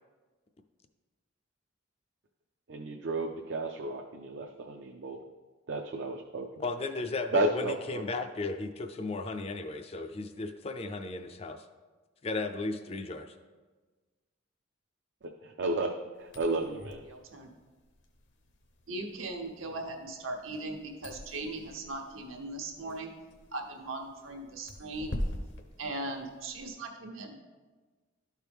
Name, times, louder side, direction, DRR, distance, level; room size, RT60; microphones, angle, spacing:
voice 1, 2.7-5.2 5.7-6.5 7.3-8.0 15.4-17.0, right 2 dB, 55° right, 3 dB, 0.4 m, -32 dB
voice 2, 6.6-11.6 12.2-13.3, left 3 dB, 30° left, 7 dB, 0.4 m, -35 dB
sound 1, 16.2-26.7, left 1 dB, 60° left, 0.8 m, -43 dB
voice 3, 17.1-17.5 18.9-23.1 23.5-25.1 25.8-27.3, right 2 dB, 80° right, 2 dB, 1.0 m, -39 dB
12.5 x 4.6 x 3.5 m, 1.3 s
head